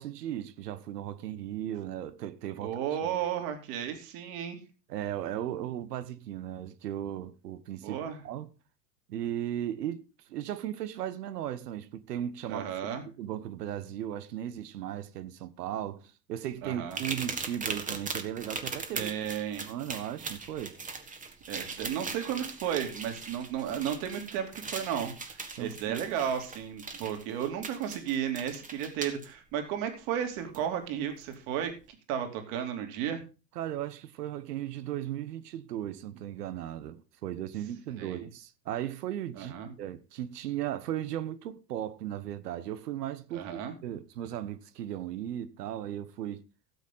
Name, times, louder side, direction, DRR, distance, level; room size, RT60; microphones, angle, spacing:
voice 1, 0.0-2.7 3.0-3.2 4.9-8.0 8.2-8.5 9.1-12.9 13.2-16.0 16.3-19.1 19.6-20.8 25.5-26.0 33.5-46.4, right 11 dB, 70° right, 1.2 m, -36 dB
voice 2, 2.6-4.6 7.8-8.2 12.5-13.0 16.6-17.0 18.9-19.7 21.5-31.7 32.1-33.2 38.0-38.3 39.4-39.7 43.3-43.7, right 9 dB, 55° right, 3.0 m, -33 dB
sound 1, 16.9-29.3 30.5-30.6 31.2-31.3, right 4 dB, 15° right, 1.7 m, -39 dB
16.5 x 7.5 x 3.9 m
hypercardioid pair, 90°, 49 cm